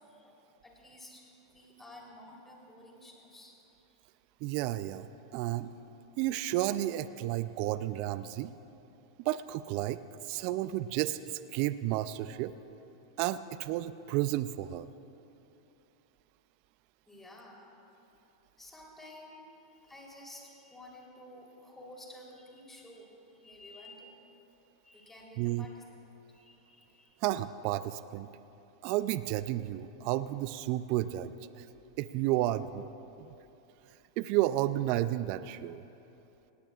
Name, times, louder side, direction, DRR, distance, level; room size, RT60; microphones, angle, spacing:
voice 1, 0.0-3.5 17.1-17.7 18.6-24.2 24.8-27.2, left 1 dB, 10° left, -2 dB, 3.5 m, -52 dB
voice 2, 4.4-5.7 6.2-8.5 9.2-12.5 13.2-14.9 25.4-25.7 27.2-28.3 28.8-31.7 32.0-32.8 33.2-33.3 34.2-35.8, right 14 dB, 50° right, 14 dB, 0.4 m, -32 dB
18.5 x 18.0 x 2.4 m, 2.9 s
hypercardioid pair, 110°, 2 cm